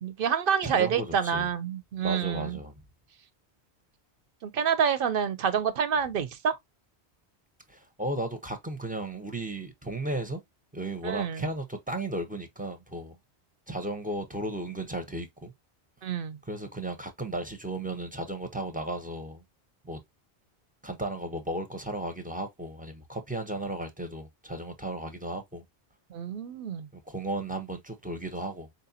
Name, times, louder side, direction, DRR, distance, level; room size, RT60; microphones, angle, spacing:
voice 1, 0.0-2.6 4.4-6.5 11.0-11.5 16.0-16.4 26.1-26.9, right 7 dB, 60° right, 0.7 m, -28 dB
voice 2, 0.6-1.5 2.0-2.8 7.7-10.4 10.7-13.2 13.7-15.5 16.4-19.4 19.8-20.0 20.8-25.6 26.9-28.7, right 1 dB, 10° right, 0.5 m, -35 dB
4.4 x 2.6 x 2.6 m
omnidirectional pair, 1.1 m